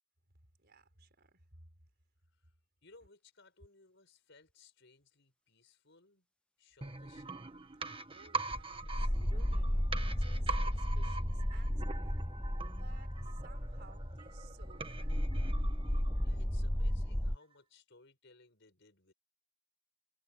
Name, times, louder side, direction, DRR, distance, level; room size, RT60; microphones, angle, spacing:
voice 1, 0.6-1.7 8.1-9.9 10.2-12.2 12.5-15.4, right 3 dB, 50° right, 4.9 m, -60 dB
voice 2, 2.8-6.3 6.6-7.3 16.2-19.1, left 3 dB, 60° left, 6.3 m, -62 dB
sound 1, 6.8-16.5 16.8-16.9, right 4 dB, 25° right, 1.5 m, -43 dB
sound 2, 8.5-17.4, equal, 5° left, 0.5 m, -34 dB
head